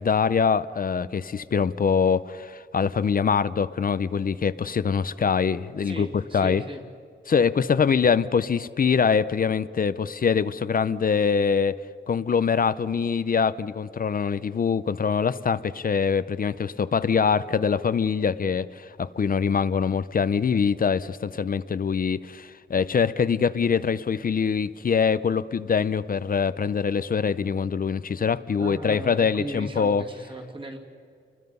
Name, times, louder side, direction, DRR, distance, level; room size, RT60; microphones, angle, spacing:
voice 1, 0.0-6.1 6.3-6.6 7.3-11.8 12.1-30.0, left 6 dB, 45° left, 15 dB, 0.5 m, -24 dB
voice 2, 5.8-6.8 28.6-30.8, right 2 dB, 25° right, 2 dB, 2.3 m, -37 dB
29.0 x 21.0 x 5.5 m, 2.3 s
wide cardioid pair, 170°, 20 cm